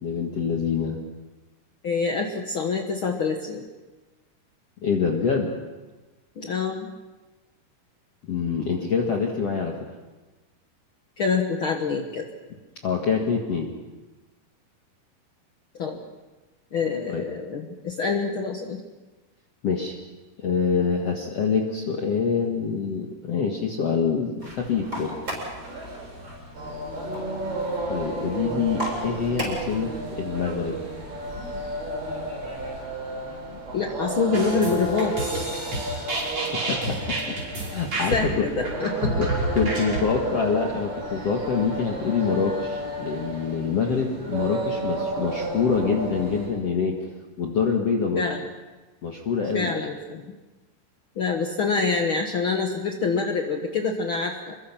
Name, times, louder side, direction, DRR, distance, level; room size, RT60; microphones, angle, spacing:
voice 1, 0.0-1.0 4.8-5.5 8.2-9.7 12.8-13.7 17.1-17.3 19.6-20.0 20.4-25.2 27.9-30.8 36.2-36.3 36.5-37.0 37.3-38.3 39.2-47.0 47.4-48.3 49.0-49.7, left 5 dB, 50° left, 1 dB, 2.2 m, -25 dB
voice 2, 1.8-3.6 6.4-6.9 11.2-12.3 15.8-16.0 16.7-18.8 33.7-35.5 38.1-39.2 48.1-48.5 49.5-50.3 51.2-54.5, left 4 dB, 75° left, 3 dB, 1.1 m, -26 dB
sound 1, 24.4-32.8, equal, 20° right, 8.0 m, -38 dB
sound 2, 26.5-46.5, right 1 dB, 70° right, 8.6 m, -32 dB
sound 3, 34.3-40.0, right 2 dB, 40° right, 6.7 m, -30 dB
27.5 x 23.0 x 5.9 m, 1.2 s
omnidirectional pair, 4.6 m